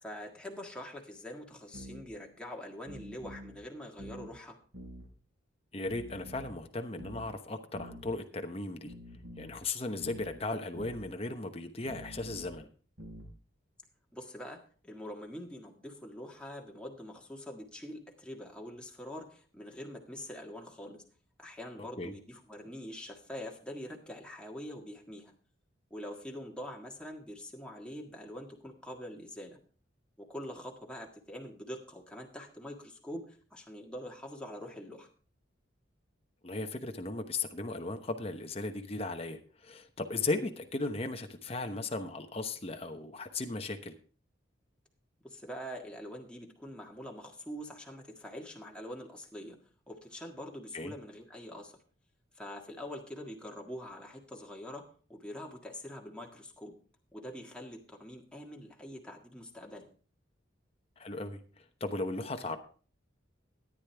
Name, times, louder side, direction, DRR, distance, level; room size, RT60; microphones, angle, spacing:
voice 1, 0.0-4.6 14.1-21.0 21.4-25.3 25.9-29.6 30.2-35.1 45.2-49.6 49.9-51.7 52.3-56.7 57.1-59.9, equal, 5° left, 0 dB, 1.7 m, -44 dB
sound 1, 1.7-2.1 2.9-3.6 4.0-4.3 4.7-5.1 5.9-6.6 7.0-7.3 7.7-8.1 8.9-9.6 10.0-10.3 10.7-11.0 11.9-12.5 13.0-13.3, equal, 85° right, 5.3 m, -47 dB
voice 2, 5.7-8.9 9.4-12.7 22.0-22.1 36.4-43.9 50.7-50.9 61.0-62.6, left 2 dB, 30° left, 6 dB, 1.0 m, -36 dB
13.5 x 10.0 x 3.4 m, 0.41 s
head